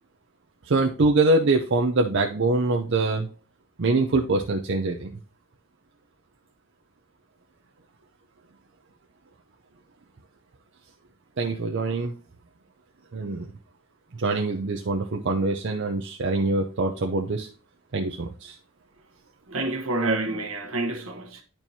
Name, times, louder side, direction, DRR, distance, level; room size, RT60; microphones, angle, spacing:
voice 1, 0.7-3.3 3.8-5.1 11.4-12.1 13.1-13.5 14.2-17.5 17.9-18.6, right 2 dB, 55° right, 0.6 m, -24 dB
voice 2, 19.5-21.4, right 2 dB, 70° right, 1.2 m, -28 dB
10.5 x 4.5 x 2.7 m
head